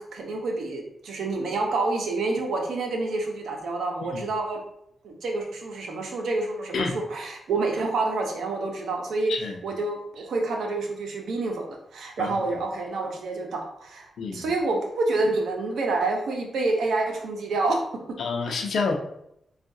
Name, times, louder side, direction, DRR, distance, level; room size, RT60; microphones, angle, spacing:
voice 1, 0.0-4.6 5.0-9.3 9.6-17.8, right 3 dB, 90° right, 1 dB, 0.7 m, -28 dB
voice 2, 14.2-14.5 18.2-18.9, left 4 dB, 75° left, 3 dB, 0.5 m, -28 dB
4.6 x 2.4 x 2.6 m, 0.77 s
wide cardioid pair, 120°, 0 cm